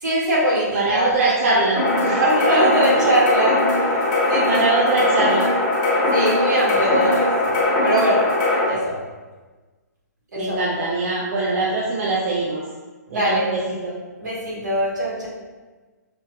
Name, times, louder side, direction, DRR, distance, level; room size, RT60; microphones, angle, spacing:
voice 1, 0.0-1.6 2.2-4.6 6.1-7.5 7.8-8.2 8.7-9.0 10.3-10.9 13.1-13.5 14.2-15.3, right 1 dB, 75° right, -5 dB, 1.3 m, -21 dB
voice 2, 0.7-2.2 3.0-3.1 4.5-5.5 10.4-12.6 13.1-14.0, right 3 dB, 50° right, -3 dB, 0.4 m, -23 dB
sound 1, 1.8-8.6, left 2 dB, 35° left, 1.1 m, -20 dB
5.0 x 2.1 x 2.2 m, 1.3 s
hypercardioid pair, 140°, 10 cm